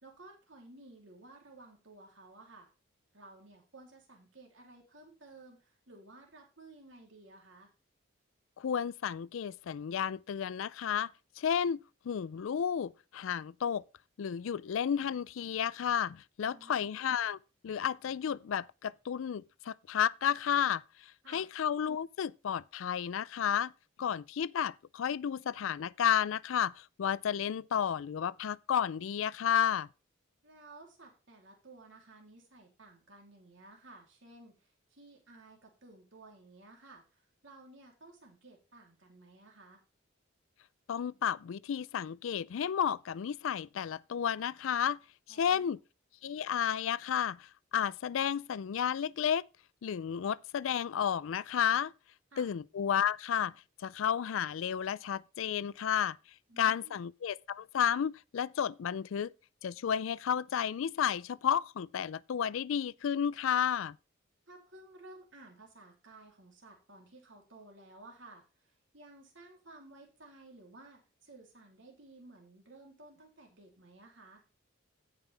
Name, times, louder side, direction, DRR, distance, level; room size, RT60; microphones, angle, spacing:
voice 1, 0.0-2.7 3.1-7.7 16.4-16.9 21.2-21.5 30.4-39.8 45.3-45.8 52.3-52.5 56.5-57.0 64.5-74.4, right 2 dB, 65° right, 3.1 m, -55 dB
voice 2, 8.6-11.1 11.4-13.8 14.2-17.4 17.6-23.7 24.0-29.9 40.9-45.0 45.3-45.8 46.2-49.4 49.8-51.9 52.4-53.5 53.8-56.2 56.6-59.3 59.6-64.0, left 8 dB, 75° left, 0.4 m, -32 dB
16.0 x 5.6 x 3.4 m
head